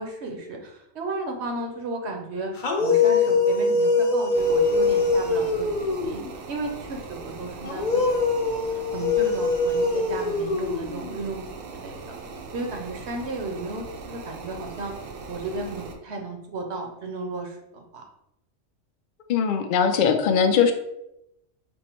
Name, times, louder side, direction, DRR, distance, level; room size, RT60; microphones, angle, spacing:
voice 1, 0.0-2.5 2.8-6.2 6.5-12.2 12.5-14.9 15.3-18.0, right 2 dB, 60° right, 2 dB, 0.9 m, -34 dB
sound 1, 2.6-6.3 7.6-11.2, left 3 dB, 45° left, 0.8 m, -23 dB
sound 2, 4.3-15.9, right 4 dB, 85° right, 1.1 m, -40 dB
voice 2, 19.3-20.7, left 6 dB, 65° left, 5 dB, 0.5 m, -20 dB
5.4 x 2.0 x 4.3 m, 0.84 s
omnidirectional pair, 1.4 m